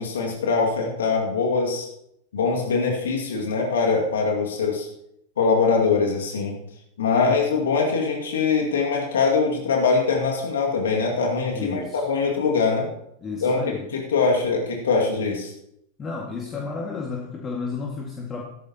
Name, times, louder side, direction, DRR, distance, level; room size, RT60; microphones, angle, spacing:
voice 1, 0.0-1.9 2.3-4.9 5.4-6.6 7.0-12.9 13.4-13.6 13.9-15.5, left 4 dB, 70° left, 0 dB, 2.2 m, -22 dB
voice 2, 11.5-12.0 13.2-13.9 16.0-18.4, left 4 dB, 25° left, -1 dB, 2.0 m, -32 dB
16.0 x 13.5 x 3.0 m, 0.78 s
figure-of-eight pair, 90°, 0 cm